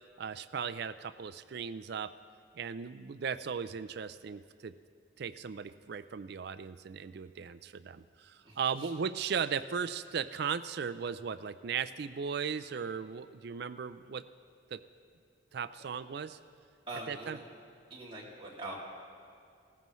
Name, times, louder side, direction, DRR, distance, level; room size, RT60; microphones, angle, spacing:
voice 1, 0.2-2.1 2.5-4.7 5.2-14.2 14.7-14.8 15.5-16.4 17.1-17.4, right 6 dB, 55° right, 12 dB, 0.4 m, -37 dB
voice 2, 8.4-8.9 16.9-17.4 17.9-18.8, right 2 dB, 25° right, -6 dB, 2.5 m, -43 dB
17.5 x 14.5 x 3.1 m, 2.4 s
head